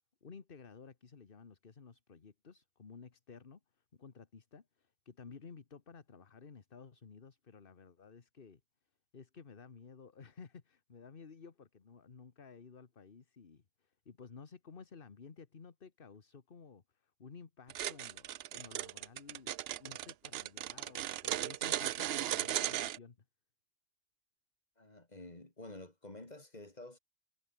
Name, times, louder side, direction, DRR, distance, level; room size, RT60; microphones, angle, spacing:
voice 1, 0.2-8.6 9.1-18.2 18.5-19.5 19.8-23.2, left 5 dB, 55° left, 1.6 m, -54 dB
sound 1, 17.7-23.0, right 12 dB, 70° right, 0.8 m, -36 dB
voice 2, 24.8-27.0, left 2 dB, 40° left, 3.8 m, -50 dB
omnidirectional pair, 1.1 m